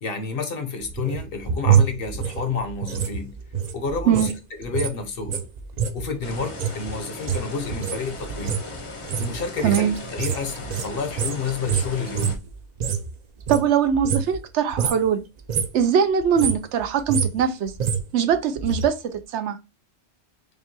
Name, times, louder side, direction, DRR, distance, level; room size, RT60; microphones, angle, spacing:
voice 1, 0.0-3.4 3.7-5.4 5.9-8.6 9.2-12.4, left 5 dB, 60° left, 0.9 m, -30 dB
sound 1, 0.8-4.4 4.6-13.1 13.4-14.5 14.7-15.1 15.4-15.8 16.2-18.9 19.1-19.2, right 8 dB, 55° right, 0.5 m, -26 dB
sound 2, 6.2-12.4, left 3 dB, 35° left, 0.6 m, -38 dB
voice 2, 9.6-9.9 13.5-15.2 15.7-17.7 18.1-19.6, right 8 dB, 80° right, 0.9 m, -21 dB
5.1 x 2.2 x 2.8 m
omnidirectional pair, 1.2 m